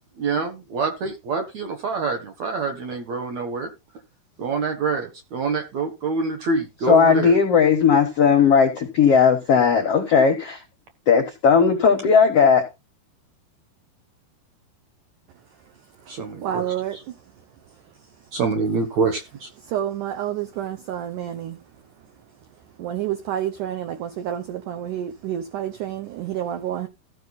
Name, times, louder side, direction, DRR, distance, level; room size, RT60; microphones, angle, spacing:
voice 1, 0.2-3.7 4.4-7.4 16.1-16.6 18.3-19.5, right 4 dB, 60° right, 1.9 m, -26 dB
voice 2, 6.9-10.6 11.1-12.6, left 6 dB, 75° left, 1.4 m, -17 dB
voice 3, 15.5-18.3 19.6-22.2 22.5-26.9, right 11 dB, 80° right, 1.8 m, -30 dB
14.5 x 5.8 x 4.1 m
omnidirectional pair, 4.8 m